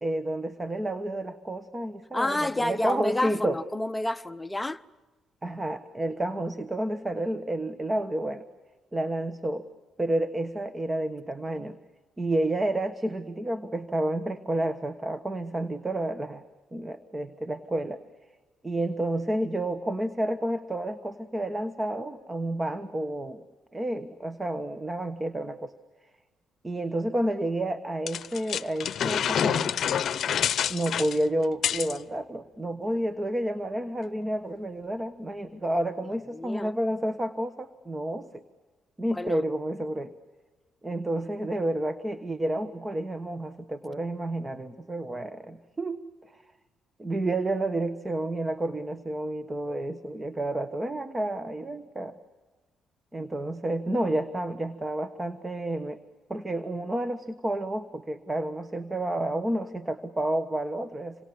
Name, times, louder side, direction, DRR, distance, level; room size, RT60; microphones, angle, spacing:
voice 1, 0.0-3.6 5.4-8.4 8.9-9.7 10.0-11.8 12.2-16.5 16.7-18.0 18.6-23.4 23.7-25.7 26.6-29.7 30.7-38.4 39.0-40.1 40.8-46.4 47.0-52.1 53.1-56.0 56.3-61.2, right 1 dB, 20° right, 1.3 m, -30 dB
voice 2, 2.1-4.8 35.5-35.6 36.3-36.7 39.1-39.4 53.2-53.3, left 1 dB, 10° left, 0.8 m, -30 dB
sound 1, 28.1-32.0, left 9 dB, 60° left, 0.7 m, -27 dB
27.5 x 26.0 x 7.2 m
cardioid pair, 90°, 0 cm